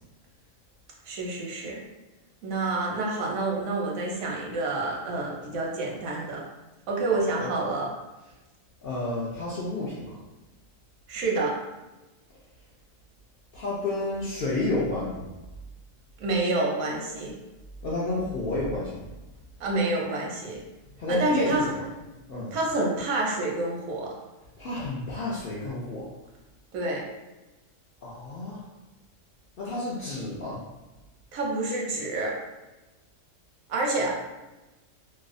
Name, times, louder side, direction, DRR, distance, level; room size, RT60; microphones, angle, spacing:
voice 1, 1.1-1.8 2.4-6.4 6.9-7.9 11.1-11.6 16.2-17.3 19.6-20.6 21.1-21.6 22.5-24.1 26.7-27.0 31.3-32.3 33.7-34.2, right 2 dB, 90° right, -2 dB, 1.1 m, -28 dB
voice 2, 8.8-10.2 13.5-15.2 17.8-19.0 21.0-21.7 22.3-22.6 24.6-26.1 28.0-28.6 29.6-30.6, left 2 dB, 65° left, -7 dB, 0.5 m, -30 dB
2.7 x 2.0 x 2.4 m, 1.1 s
omnidirectional pair, 1.4 m